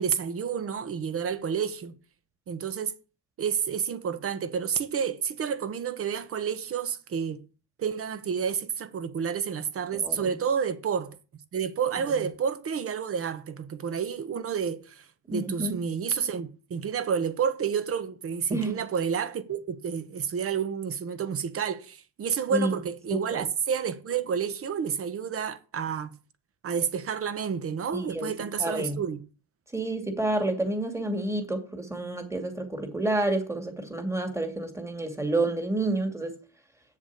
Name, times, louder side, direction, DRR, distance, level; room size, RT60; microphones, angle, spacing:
voice 1, 0.0-1.9 2.5-2.9 3.4-7.4 7.8-11.2 11.5-26.1 26.6-29.2, right 7 dB, 35° right, 1.2 m, -30 dB
voice 2, 10.0-10.3 12.0-12.2 15.3-15.8 18.5-18.8 22.5-22.7 23.1-23.4 27.9-28.3 28.6-29.0 29.7-36.4, right 2 dB, 5° right, 2.3 m, -29 dB
8.5 x 7.3 x 8.5 m
cardioid pair, 145°, 42 cm